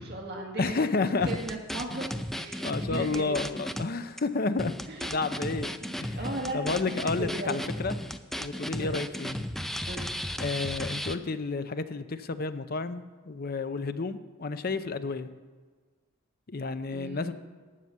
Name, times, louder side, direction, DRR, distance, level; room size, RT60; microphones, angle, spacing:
voice 1, 0.0-3.5 4.9-5.1 5.8-7.5 8.8-9.0 9.8-10.1 14.7-14.9 16.9-17.3, right 1 dB, 50° right, 0 dB, 1.8 m, -37 dB
voice 2, 0.6-1.3 1.9-2.0 2.6-4.7 5.1-5.7 6.0-6.2 6.5-7.9 8.3-9.4 10.4-15.3 16.5-17.3, left 3 dB, 45° left, 11 dB, 0.6 m, -31 dB
sound 1, 1.2-3.9 4.2-4.3 4.6-11.2, equal, ahead, 0.4 m, -35 dB
15.0 x 5.7 x 9.6 m, 1.4 s
head